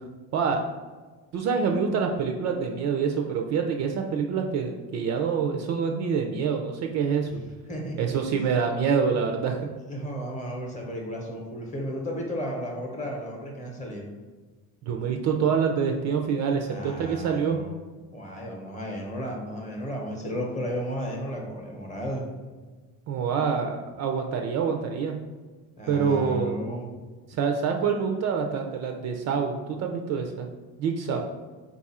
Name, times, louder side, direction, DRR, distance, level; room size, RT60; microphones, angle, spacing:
voice 1, 0.3-0.6 1.3-7.3 8.0-9.7 14.8-17.6 23.1-25.2 25.9-26.6 27.3-30.5 30.8-31.2, right 6 dB, 45° right, 4 dB, 0.4 m, -26 dB
voice 2, 7.2-8.0 8.3-8.5 9.9-14.1 16.6-17.8 18.1-22.3 25.8-26.9 31.1-31.2, equal, 20° left, 0 dB, 0.8 m, -34 dB
4.1 x 2.4 x 4.1 m, 1.4 s
cardioid pair, 145°, 37 cm